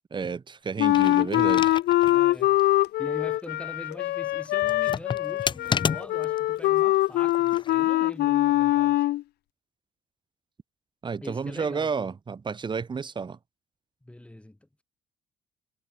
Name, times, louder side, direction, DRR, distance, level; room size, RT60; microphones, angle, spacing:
voice 1, 0.1-1.7 11.0-13.4, right 5 dB, 25° right, 1.6 m, -31 dB
Wind instrument woodwind instrument, 0.8-9.2, left 15 dB, 70° left, 0.9 m, -23 dB
sound 1, 0.8-2.2 2.6-2.7 4.6-6.4 7.3-7.7, left 6 dB, 30° left, 0.7 m, -31 dB
voice 2, 2.1-2.6 3.0-9.1 11.2-12.1 14.0-14.8, left 1 dB, 5° left, 7.1 m, -42 dB
cardioid pair, 110°, 17 cm